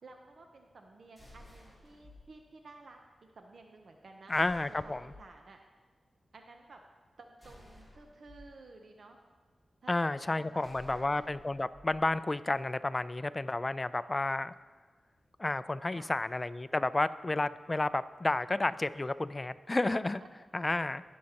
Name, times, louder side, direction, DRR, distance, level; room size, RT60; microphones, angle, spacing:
voice 1, 0.0-4.4 4.8-5.6 6.3-6.8 7.2-9.2 9.8-11.3 15.9-16.2 20.2-20.3, right 3 dB, 65° right, 3 dB, 0.7 m, -54 dB
sound 1, 1.2-2.3 4.3-5.3 7.4-8.5 10.6-12.1, left 1 dB, 20° right, 3.3 m, -55 dB
voice 2, 4.3-5.0 9.9-14.5 15.4-20.2 20.5-21.0, left 2 dB, 25° left, 14 dB, 0.3 m, -31 dB
17.5 x 6.4 x 2.9 m, 1.4 s
wide cardioid pair, 75°, 0 cm